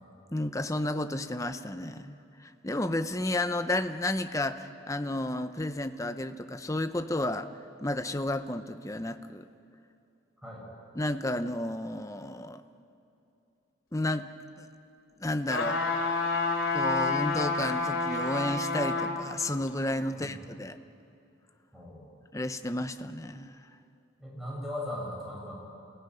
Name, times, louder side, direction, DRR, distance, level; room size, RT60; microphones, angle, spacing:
voice 1, 0.3-2.2 2.4-7.5 7.8-9.4 11.0-12.6 13.9-14.2 14.6-14.7 15.2-15.8 16.7-20.8 22.3-23.6, left 1 dB, 15° left, 9 dB, 0.7 m, -32 dB
sound 1, 15.5-19.1 19.7-19.8, left 3 dB, 80° left, 3.9 m, -29 dB
voice 2, 21.7-22.1 24.2-25.5, left 1 dB, ahead, -4 dB, 6.8 m, -38 dB
28.0 x 17.0 x 9.8 m, 2.7 s
head